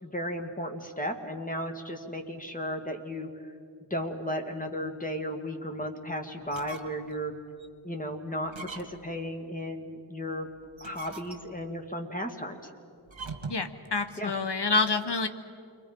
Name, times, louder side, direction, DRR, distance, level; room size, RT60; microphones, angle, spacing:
voice 1, 0.0-3.3 3.9-7.3 7.8-10.5 10.8-12.6 14.2-14.3, equal, 15° left, 3 dB, 2.1 m, -34 dB
sound 1, 6.4-7.1 7.6-7.7 8.5-9.2 10.6-11.7 13.1-13.7, right 3 dB, 75° right, 1.7 m, -42 dB
voice 2, 13.5-15.3, left 3 dB, 60° left, 9 dB, 1.1 m, -27 dB
29.0 x 23.0 x 5.2 m, 2.4 s
wide cardioid pair, 55°, 47 cm